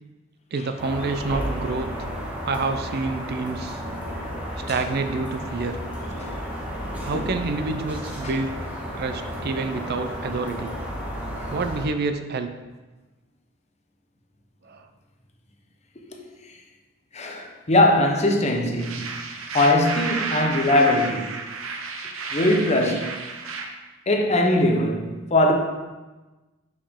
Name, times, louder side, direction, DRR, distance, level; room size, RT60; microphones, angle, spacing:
voice 1, 0.5-1.9 2.4-3.8 4.7-5.8 7.1-8.5 9.0-10.7 11.5-12.5 14.6-14.9, right 3 dB, 50° right, 0.4 m, -28 dB
sound 1, 0.8-11.9, equal, 5° right, 1.2 m, -32 dB
voice 2, 6.9-7.3 8.2-8.3 16.1-16.2 17.1-19.1 19.5-21.3 22.3-23.2 24.1-25.5, left 1 dB, 35° left, 0.8 m, -21 dB
sound 2, 18.8-23.7, right 4 dB, 80° right, 0.7 m, -31 dB
6.9 x 5.3 x 3.6 m
head